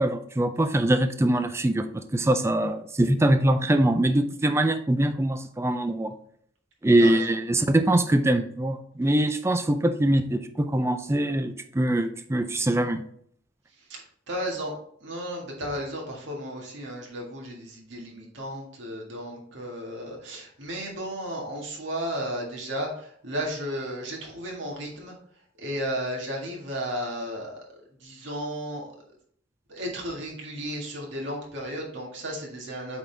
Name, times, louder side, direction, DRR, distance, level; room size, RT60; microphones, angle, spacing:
voice 1, 0.0-1.9 2.1-6.1 6.8-13.0, right 1 dB, 15° right, 8 dB, 0.4 m, -23 dB
voice 2, 14.3-14.7 15.0-25.1 25.6-27.6 28.0-28.9 29.7-33.0, equal, 80° right, -1 dB, 1.8 m, -34 dB
8.2 x 3.9 x 3.4 m, 0.62 s
head